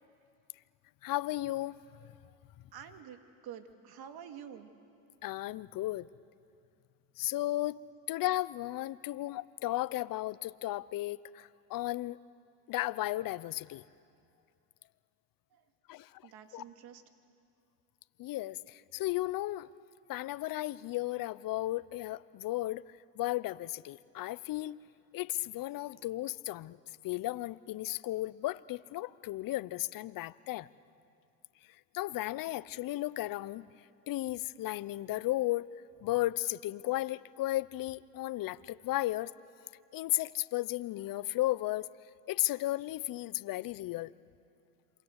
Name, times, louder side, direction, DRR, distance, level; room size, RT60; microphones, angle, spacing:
voice 1, 1.0-1.8 5.2-6.1 7.2-7.8 8.1-12.2 12.7-13.8 15.9-16.1 16.5-16.6 18.2-19.7 20.1-22.8 23.2-24.8 25.1-26.8 27.0-30.7 31.9-33.6 34.1-35.7 36.0-39.3 39.9-41.9 42.3-44.1, left 16 dB, 50° left, 18 dB, 0.8 m, -34 dB
voice 2, 2.7-4.7 9.0-9.1 15.5-17.0, right 8 dB, 55° right, 7 dB, 2.5 m, -49 dB
27.5 x 25.5 x 8.2 m, 2.5 s
supercardioid pair, 90°, 43 cm